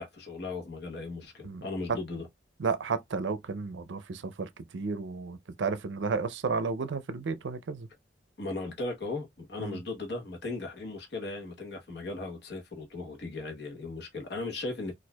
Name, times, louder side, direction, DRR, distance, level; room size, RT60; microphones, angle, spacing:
voice 1, 0.0-2.3 8.4-14.9, left 3 dB, 60° left, 1.0 m, -37 dB
voice 2, 1.4-2.0 2.6-7.9 9.6-9.8, right 4 dB, 75° right, 0.5 m, -33 dB
4.3 x 2.5 x 2.2 m
head